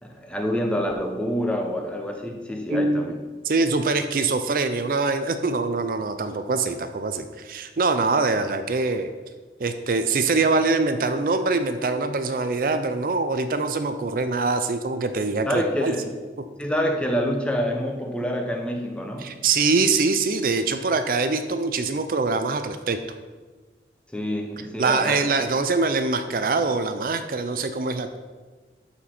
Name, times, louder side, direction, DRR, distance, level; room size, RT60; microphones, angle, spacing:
voice 1, 0.0-3.2 15.5-16.2 16.6-19.4 24.1-25.2, equal, 5° left, 3 dB, 0.7 m, -27 dB
voice 2, 2.7-3.1 3.4-9.1 9.6-15.9 19.2-23.0 24.8-28.2, right 3 dB, 50° right, 9 dB, 0.4 m, -24 dB
12.0 x 4.4 x 4.3 m, 1.4 s
head